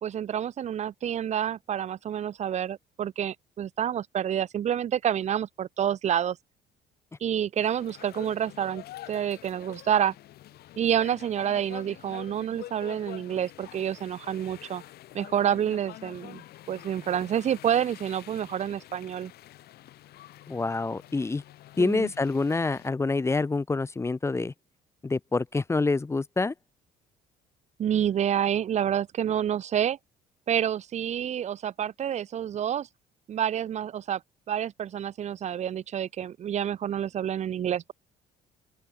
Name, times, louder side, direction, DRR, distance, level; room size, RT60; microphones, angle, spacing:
voice 1, 0.0-6.4 7.2-10.1 10.8-14.8 15.1-16.4 16.7-19.3 21.8-22.1 27.8-30.0 30.5-32.9 33.3-34.2 34.5-37.9, right 9 dB, 45° right, 0.6 m, -28 dB
sound 1, 7.6-22.9, left 14 dB, 70° left, 1.3 m, -47 dB
voice 2, 20.5-21.4 21.8-24.5 25.0-26.5, left 3 dB, 15° left, 0.7 m, -27 dB
open air
cardioid pair, 110°, 17 cm